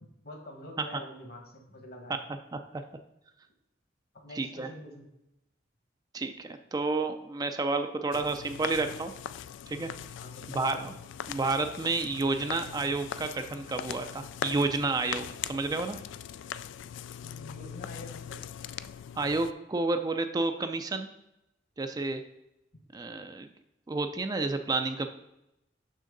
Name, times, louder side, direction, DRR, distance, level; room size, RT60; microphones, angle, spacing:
voice 1, 0.2-2.1 4.2-5.0 10.1-10.9 17.2-18.4, left 1 dB, 55° left, 3 dB, 1.4 m, -46 dB
voice 2, 2.5-2.8 4.3-4.7 6.1-9.1 9.7-9.9 10.5-10.9 11.3-16.0 19.2-21.1 21.8-22.2 22.9-23.5 23.9-25.1, right 3 dB, 20° right, 7 dB, 0.4 m, -30 dB
sound 1, 8.1-19.5, left 9 dB, 85° left, 0.3 m, -41 dB
6.4 x 6.1 x 3.9 m, 0.87 s
head